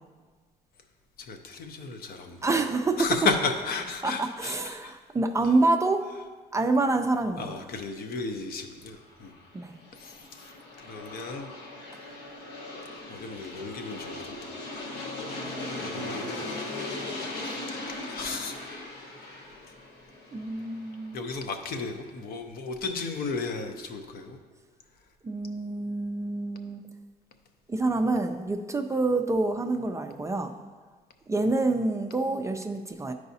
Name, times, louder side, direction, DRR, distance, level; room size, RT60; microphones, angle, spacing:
voice 1, 1.2-2.4 3.0-5.0 7.4-9.3 9.9-10.5 10.8-11.5 13.1-14.5 14.9-15.1 15.7-16.3 17.9-18.5 21.1-24.4, left 4 dB, 60° left, 5 dB, 0.7 m, -34 dB
voice 2, 2.4-3.1 4.0-6.0 6.5-7.5 9.5-9.7 20.3-21.2 25.2-26.8 27.7-30.5 31.3-33.1, right 2 dB, 15° right, 6 dB, 0.4 m, -27 dB
Aircraft, 9.0-21.8, left 2 dB, 80° left, 1.2 m, -39 dB
10.5 x 4.7 x 2.7 m, 1.4 s
cardioid pair, 110°, 17 cm